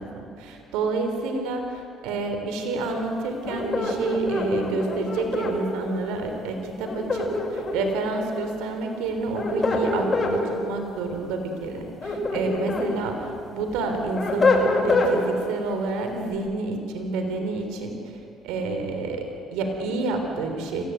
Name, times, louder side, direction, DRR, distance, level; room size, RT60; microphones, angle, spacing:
voice 1, 0.0-18.2 18.4-20.8, right 3 dB, 85° right, 5 dB, 3.5 m, -29 dB
sound 1, 3.4-5.6 6.8-7.9 9.1-10.4 11.8-12.9 13.4-15.1, left 2 dB, 30° left, 6.5 m, -24 dB
26.5 x 16.5 x 9.6 m, 2.4 s
supercardioid pair, 90°, 0 cm